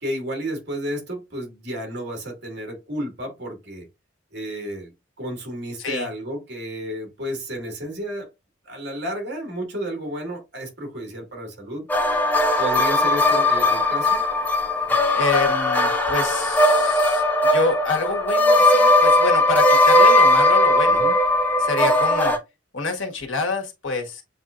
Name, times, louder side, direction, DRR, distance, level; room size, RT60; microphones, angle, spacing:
voice 1, 0.0-3.9 4.3-4.9 5.2-8.3 8.6-11.9 12.6-14.2 20.9-21.2, equal, 55° right, 2.1 m, -32 dB
sound 1, 11.9-22.4, left 1 dB, 10° left, 0.7 m, -18 dB
voice 2, 14.9-21.1 21.6-22.4 22.7-24.2, left 3 dB, 80° left, 1.4 m, -27 dB
7.5 x 2.7 x 2.4 m
head